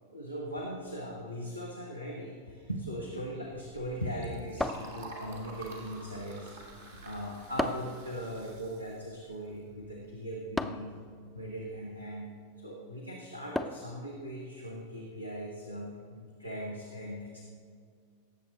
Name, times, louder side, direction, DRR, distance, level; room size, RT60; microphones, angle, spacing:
voice 1, 0.1-11.0 11.3-12.3 12.6-17.4, equal, 90° right, -2 dB, 1.3 m, -39 dB
Liquid, 3.4-10.1, right 3 dB, 60° right, 2.5 m, -49 dB
sound 1, 4.6-5.5 7.6-8.0 10.6-11.0 13.6-14.0, left 2 dB, 5° left, 0.5 m, -34 dB
17.5 x 7.7 x 4.1 m, 2.1 s
figure-of-eight pair, 90°, 0 cm